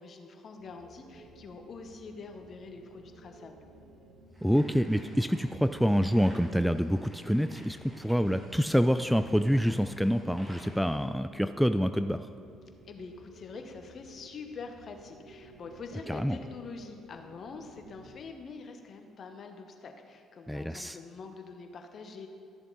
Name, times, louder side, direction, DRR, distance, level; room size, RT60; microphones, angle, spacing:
voice 1, 0.0-3.6 12.8-22.3, left 4 dB, 50° left, 5 dB, 1.1 m, -45 dB
sound 1, 0.6-18.1, right 2 dB, 75° right, 1.2 m, -55 dB
sound 2, 4.3-11.1, equal, 15° right, 2.8 m, -54 dB
voice 2, 4.4-12.3 16.1-16.4 20.5-21.0, equal, ahead, 10 dB, 0.3 m, -27 dB
13.5 x 6.9 x 4.0 m, 2.3 s
hypercardioid pair, 50°, 0 cm